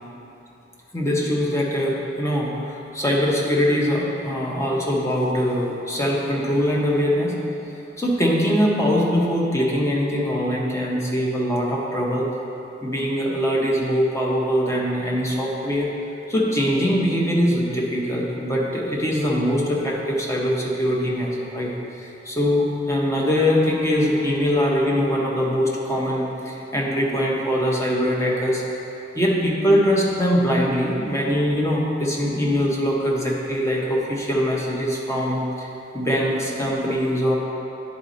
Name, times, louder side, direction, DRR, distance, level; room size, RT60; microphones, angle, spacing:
voice 1, 0.9-7.4 8.0-12.3 12.8-15.9 16.3-21.7 22.0-28.6 29.1-35.7 35.9-37.4, equal, 15° left, -3 dB, 0.9 m, -22 dB
9.7 x 4.1 x 3.9 m, 2.9 s
head